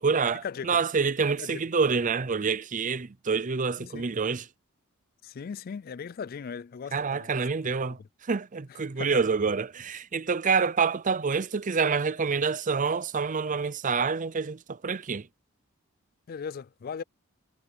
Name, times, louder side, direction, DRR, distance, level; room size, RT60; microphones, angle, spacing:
voice 1, 0.0-4.5 6.9-8.0 8.3-15.3, right 5 dB, 40° right, 0.6 m, -27 dB
voice 2, 5.2-7.3 8.7-9.2 16.3-17.0, left 6 dB, 45° left, 0.4 m, -38 dB
head